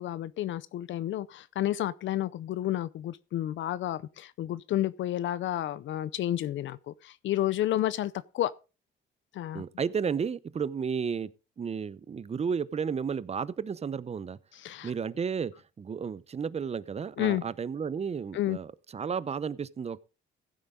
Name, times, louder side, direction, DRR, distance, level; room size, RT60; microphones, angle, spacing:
voice 1, 0.0-8.5 9.3-9.6 14.6-14.9 17.2-17.4 18.3-18.6, left 13 dB, 70° left, 0.6 m, -31 dB
voice 2, 9.5-11.3 11.6-14.4 14.8-15.5 15.8-20.0, right 6 dB, 30° right, 0.7 m, -32 dB
15.5 x 8.9 x 3.8 m
cardioid pair, 90°, 20 cm